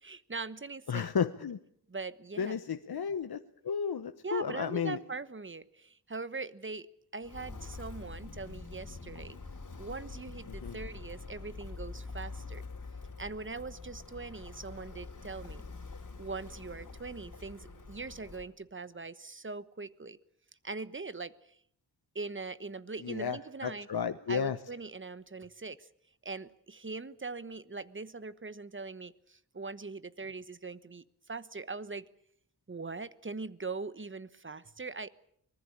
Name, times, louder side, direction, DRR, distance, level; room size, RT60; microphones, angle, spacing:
voice 1, 0.0-1.1 1.9-2.6 4.2-6.9 7.1-9.4 9.8-12.6 13.2-15.6 16.2-20.2 20.6-21.6 22.1-23.9 24.3-25.9 26.2-32.1 32.7-35.1, right 4 dB, 30° right, 15 dB, 1.2 m, -41 dB
voice 2, 0.9-1.6 2.4-5.0 10.6-10.8 23.0-24.6, left 7 dB, 70° left, 9 dB, 1.1 m, -33 dB
Walk footsteps, 7.2-18.5, left 3 dB, 50° left, 3.6 m, -45 dB
25.0 x 20.0 x 8.7 m, 0.67 s
wide cardioid pair, 70°, 39 cm